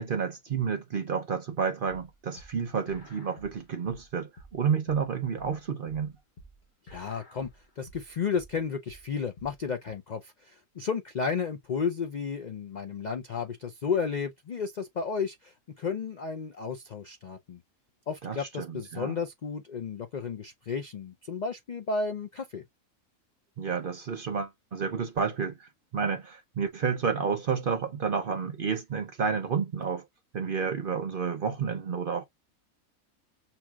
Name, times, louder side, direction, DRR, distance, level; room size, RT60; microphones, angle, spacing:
voice 1, 0.0-6.1 18.2-19.1 23.6-30.0 30.3-32.2, right 6 dB, 55° right, 0.6 m, -30 dB
sound 1, 1.9-9.9, equal, 40° left, 1.0 m, -52 dB
voice 2, 6.8-17.6 18.1-22.6, left 5 dB, 60° left, 0.4 m, -33 dB
5.9 x 2.8 x 2.3 m
omnidirectional pair, 1.5 m